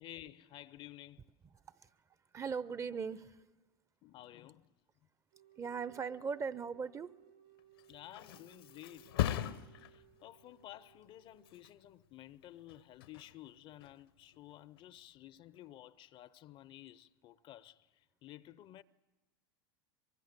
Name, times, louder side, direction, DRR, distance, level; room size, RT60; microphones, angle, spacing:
voice 1, 0.0-1.4 4.0-4.7 7.9-18.8, left 13 dB, 45° left, 0.7 m, -53 dB
voice 2, 2.3-3.4 5.6-7.1, right 5 dB, 25° right, 0.7 m, -39 dB
sound 1, 5.3-12.1, right 11 dB, 55° right, 1.5 m, -64 dB
Thump thud, 7.6-15.1 15.5-15.9, left 12 dB, 75° left, 1.0 m, -42 dB
23.5 x 23.0 x 6.8 m
hypercardioid pair, 90°, 12 cm